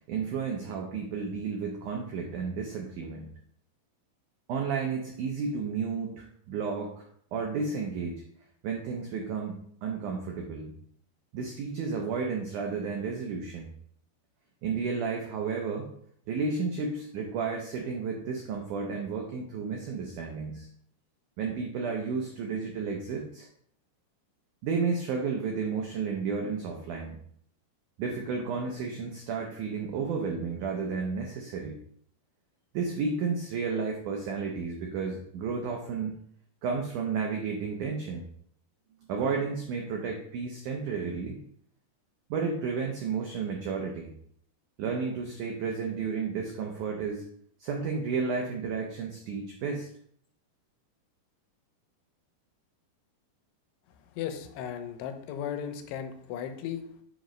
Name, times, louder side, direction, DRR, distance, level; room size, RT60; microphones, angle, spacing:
voice 1, 0.0-3.3 4.5-7.1 7.3-8.2 8.6-10.7 11.3-13.7 14.6-15.9 16.3-20.7 21.4-23.5 24.6-27.2 28.0-31.8 32.7-36.2 36.6-38.2 39.1-41.4 42.3-44.1 44.8-47.2 47.6-49.9, right 5 dB, 90° right, 1 dB, 1.7 m, -32 dB
voice 2, 54.2-56.8, left 9 dB, 85° left, 7 dB, 2.8 m, -36 dB
7.8 x 3.1 x 5.0 m, 0.64 s
omnidirectional pair, 4.7 m